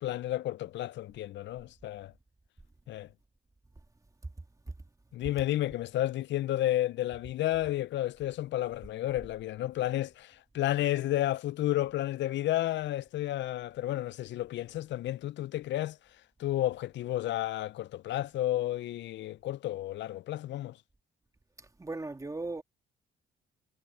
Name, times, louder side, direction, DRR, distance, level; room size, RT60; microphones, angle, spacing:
voice 1, 0.0-2.1 2.9-3.1 5.1-16.0 16.4-20.8, left 14 dB, 65° left, 0.5 m, -32 dB
voice 2, 21.6-22.6, right 2 dB, 15° right, 2.0 m, -38 dB
cardioid pair, 90°, 20 cm